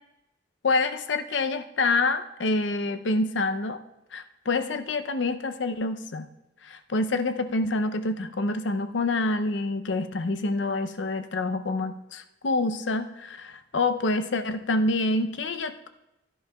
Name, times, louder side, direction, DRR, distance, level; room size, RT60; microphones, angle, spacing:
voice 1, 0.6-3.8 4.1-6.3 6.6-15.9, left 2 dB, 85° left, 9 dB, 0.6 m, -27 dB
16.5 x 11.0 x 2.3 m, 0.92 s
head